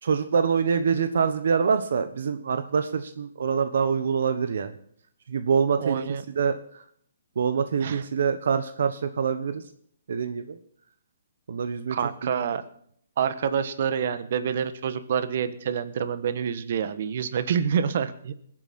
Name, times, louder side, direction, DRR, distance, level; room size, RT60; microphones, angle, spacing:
voice 1, 0.0-4.7 5.3-6.0 6.3-6.8 7.4-9.6 10.1-10.6 11.5-12.0, right 6 dB, 65° right, 10 dB, 1.1 m, -25 dB
voice 2, 5.8-6.2 7.8-8.0 11.9-12.6 13.2-18.3, right 7 dB, 50° right, 11 dB, 1.3 m, -27 dB
20.0 x 9.0 x 4.4 m, 0.64 s
hypercardioid pair, 160°, 0 cm